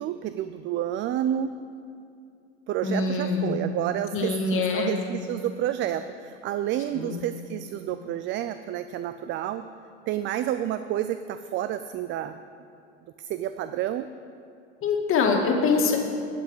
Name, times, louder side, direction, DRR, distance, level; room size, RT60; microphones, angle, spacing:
voice 1, 0.0-1.5 2.7-9.6 10.1-12.4 13.2-14.1, right 11 dB, 35° right, 11 dB, 0.4 m, -30 dB
voice 2, 2.8-3.6 4.1-4.9 6.9-7.2 14.8-16.0, left 4 dB, 40° left, 1 dB, 2.1 m, -24 dB
12.0 x 5.9 x 8.0 m, 2.5 s
hypercardioid pair, 90°, 32 cm